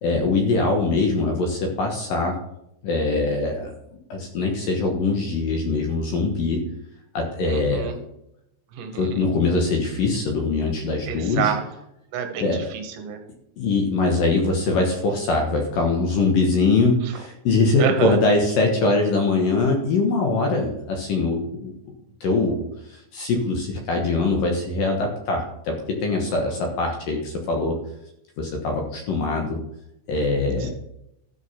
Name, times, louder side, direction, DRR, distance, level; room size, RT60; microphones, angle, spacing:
voice 1, 0.0-2.4 2.8-6.6 7.1-7.9 8.9-11.5 12.4-12.6 13.6-21.7 22.2-22.6 22.9-27.8 28.4-29.6 30.1-30.7, left 3 dB, 65° left, 2 dB, 2.5 m, -22 dB
voice 2, 7.5-8.0 8.7-9.3 11.1-11.6 12.1-13.2 17.0-17.1 17.8-18.2 26.5-26.7 30.6-30.7, right 8 dB, 75° right, 5 dB, 3.4 m, -28 dB
12.5 x 6.3 x 5.6 m, 0.80 s
omnidirectional pair, 5.2 m